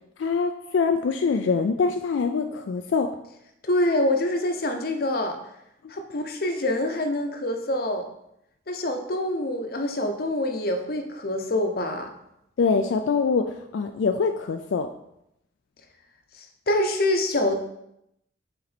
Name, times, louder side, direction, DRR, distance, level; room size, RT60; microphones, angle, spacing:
voice 1, 0.2-3.1 12.6-14.9, left 5 dB, 80° left, 6 dB, 0.4 m, -24 dB
voice 2, 3.6-5.4 5.9-8.1 8.7-12.1 16.4-17.7, left 1 dB, 55° left, 5 dB, 0.7 m, -26 dB
5.7 x 4.4 x 4.1 m, 0.80 s
head